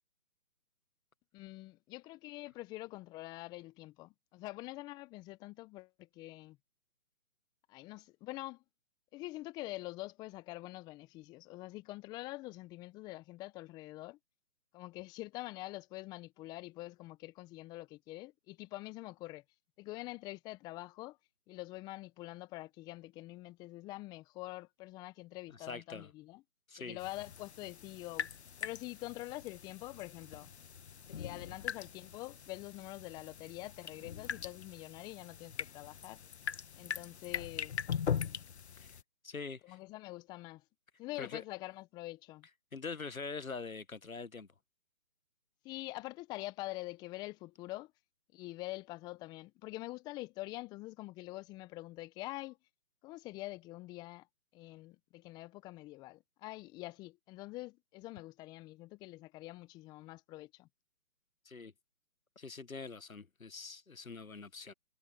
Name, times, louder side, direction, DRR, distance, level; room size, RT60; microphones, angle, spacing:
voice 1, 1.3-6.6 7.7-8.6 9.1-14.2 14.7-19.4 19.8-21.2 21.5-26.4 26.8-28.3 28.6-30.5 31.1-36.2 36.7-37.7 39.6-40.6 41.0-42.5 45.6-47.9 48.3-52.6 53.0-54.3 54.5-60.7, left 19 dB, 10° left, 1.0 m, -45 dB
voice 2, 25.5-26.1 26.7-27.0 38.8-38.9 39.2-39.8 41.2-41.4 42.7-44.5 61.4-61.7 62.4-64.7, left 4 dB, 90° left, 1.3 m, -44 dB
sound 1, 27.0-39.0, left 7 dB, 50° left, 1.7 m, -42 dB
figure-of-eight pair, 145°, 41 cm